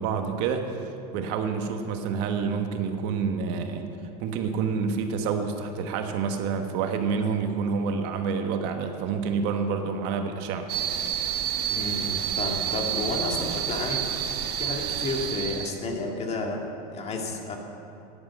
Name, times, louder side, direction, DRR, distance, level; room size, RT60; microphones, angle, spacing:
voice 1, 0.0-3.9 4.2-10.7, right 5 dB, 60° right, 5 dB, 1.3 m, -28 dB
sound 1, 10.7-15.7, right 10 dB, 90° right, 1.0 m, -29 dB
voice 2, 11.7-14.1 14.6-16.6 16.9-17.6, left 2 dB, 35° left, 2 dB, 2.0 m, -31 dB
10.5 x 9.6 x 7.4 m, 2.7 s
supercardioid pair, 120°, 19 cm